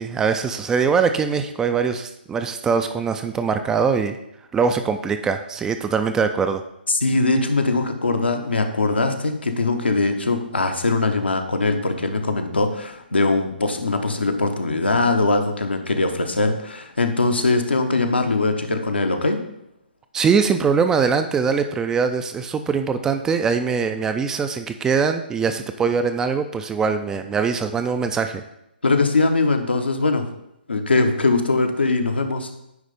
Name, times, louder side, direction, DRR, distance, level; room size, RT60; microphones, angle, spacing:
voice 1, 0.0-4.2 4.5-6.6 20.1-28.4, right 5 dB, 10° right, 8 dB, 0.3 m, -22 dB
voice 2, 6.9-19.4 28.8-30.3 30.7-32.5, left 3 dB, 80° left, 5 dB, 1.0 m, -21 dB
9.4 x 3.2 x 5.3 m, 0.83 s
figure-of-eight pair, 130°, 6 cm